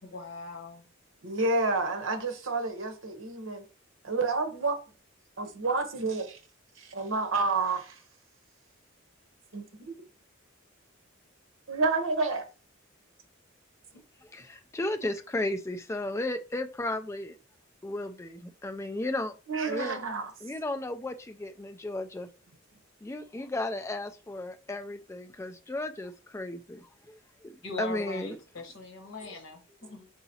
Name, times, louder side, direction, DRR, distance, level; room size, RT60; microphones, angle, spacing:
voice 1, 0.0-0.9 27.6-30.1, left 2 dB, 75° left, 1.1 m, -40 dB
voice 2, 1.2-3.6 4.0-4.8 5.4-6.4 6.8-8.0 9.5-9.9 11.7-12.4 19.5-20.3, right 3 dB, 75° right, 0.9 m, -29 dB
voice 3, 14.2-17.4 17.8-19.3 19.7-20.0 20.4-22.3 23.0-27.5 27.8-28.4, left 2 dB, 15° left, 0.3 m, -34 dB
4.7 x 4.0 x 2.8 m
head